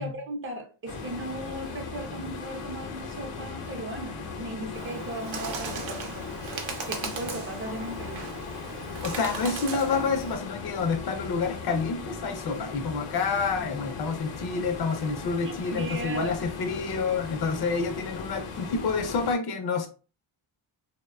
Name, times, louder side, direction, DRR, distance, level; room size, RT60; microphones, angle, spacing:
voice 1, 0.0-6.5 6.8-8.3 15.4-16.3, right 1 dB, 25° right, 0.5 m, -37 dB
sound 1, 0.9-19.3, left 5 dB, 90° left, 0.7 m, -38 dB
Bird, 4.7-10.3, right 4 dB, 65° right, 0.7 m, -37 dB
voice 2, 9.0-19.9, left 4 dB, 50° left, 0.5 m, -28 dB
2.9 x 2.1 x 2.2 m
wide cardioid pair, 160°, 50 cm